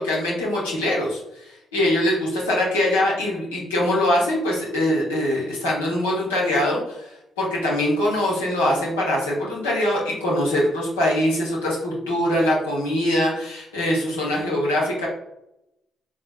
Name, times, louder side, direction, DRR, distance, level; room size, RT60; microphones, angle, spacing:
voice 1, 0.0-15.1, left 1 dB, 90° left, -5 dB, 1.0 m, -23 dB
4.2 x 3.1 x 2.3 m, 0.85 s
hypercardioid pair, 45°, 0 cm